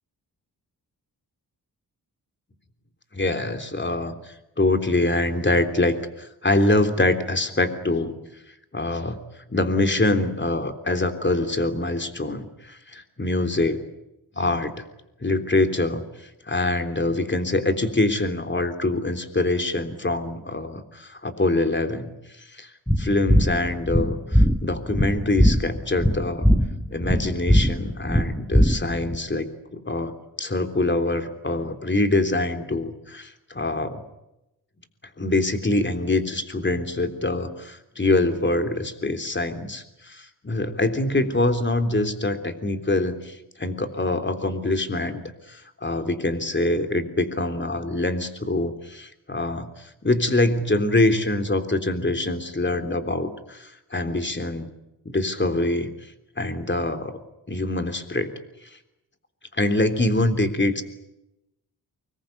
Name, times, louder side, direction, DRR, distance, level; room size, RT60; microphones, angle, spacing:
voice 1, 3.1-8.2 8.7-9.2 9.5-13.9 14.4-14.8 15.2-22.7 23.0-26.5 26.9-34.0 35.2-45.2 45.5-54.7 55.1-57.2 57.5-58.3 58.6-58.8 59.5-60.8, left 2 dB, 30° left, 7 dB, 3.5 m, -24 dB
sound 1, 22.9-29.2, equal, 5° left, 1.8 m, -20 dB
25.0 x 21.0 x 9.4 m, 0.89 s
cardioid pair, 75°, 39 cm